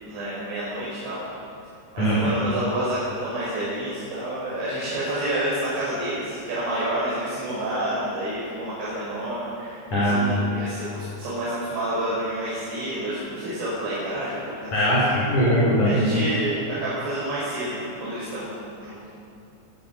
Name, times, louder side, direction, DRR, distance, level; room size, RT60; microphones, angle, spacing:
voice 1, 0.0-1.2 1.9-15.2 15.8-18.5 18.8-19.0, right 1 dB, 85° right, -9 dB, 8.2 m, -29 dB
voice 2, 2.0-2.4 9.9-10.4 14.7-16.2, equal, 45° left, -7 dB, 6.4 m, -21 dB
26.5 x 19.0 x 5.7 m, 2.7 s
omnidirectional pair, 5.1 m